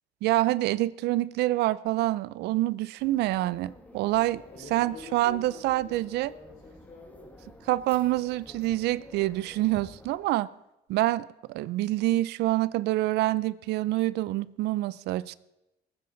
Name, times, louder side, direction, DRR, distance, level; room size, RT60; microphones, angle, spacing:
voice 1, 0.2-4.4 4.7-6.3 7.7-10.5 10.9-15.3, right 16 dB, 80° right, 0.5 m, -26 dB
sound 1, 3.0-10.2, left 1 dB, 10° left, 1.7 m, -52 dB
voice 2, 4.4-7.5, left 3 dB, 35° left, 3.8 m, -47 dB
21.0 x 9.5 x 4.0 m
cardioid pair, 110°, 17 cm